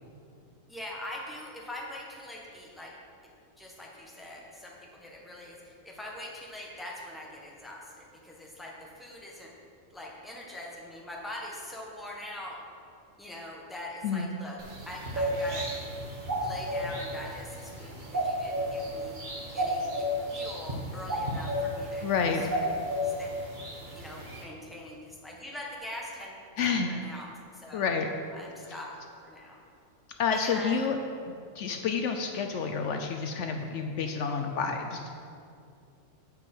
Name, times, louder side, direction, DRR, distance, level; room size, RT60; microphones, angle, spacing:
voice 1, 0.7-2.9 3.6-9.5 9.9-12.6 13.2-14.6 14.9-15.7 16.4-19.2 19.5-22.1 22.5-22.6 23.0-23.3 23.9-27.9 28.3-28.9 29.2-29.6 30.3-30.8, left 1 dB, ahead, -3 dB, 1.2 m, -43 dB
sound 1, 14.6-24.4, equal, 40° right, 1.3 m, -33 dB
voice 2, 22.0-22.4 26.6-26.9 27.7-28.1 30.2-31.0 31.3-35.2, left 5 dB, 70° left, 5 dB, 0.9 m, -29 dB
8.1 x 5.4 x 7.6 m, 2.5 s
omnidirectional pair, 1.3 m